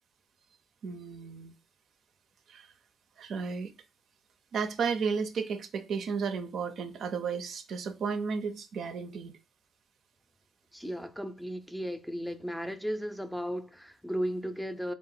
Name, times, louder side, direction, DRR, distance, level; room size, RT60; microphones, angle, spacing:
voice 1, 0.8-1.5 2.5-2.7 3.2-3.7 4.5-9.4, right 5 dB, 65° right, 0.5 m, -33 dB
voice 2, 10.7-14.9, equal, ahead, 0.5 m, -35 dB
3.8 x 2.4 x 3.8 m
cardioid pair, 90°, 0 cm